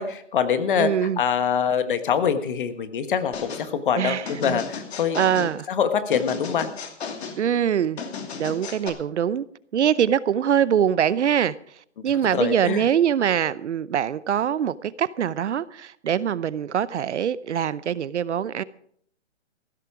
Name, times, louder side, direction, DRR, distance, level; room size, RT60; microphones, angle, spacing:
voice 1, 0.0-6.7 12.3-12.8, left 7 dB, 45° left, 1.5 m, -24 dB
voice 2, 0.8-1.2 4.0-4.6 5.1-5.7 7.4-8.0 8.4-9.5 9.7-11.5 12.0-18.6, right 9 dB, 70° right, 0.8 m, -23 dB
sound 1, 3.3-3.7 4.3-5.5 6.1-7.4 8.0-8.9, left 5 dB, 60° left, 2.6 m, -34 dB
15.5 x 12.5 x 4.9 m
hypercardioid pair, 165°, 36 cm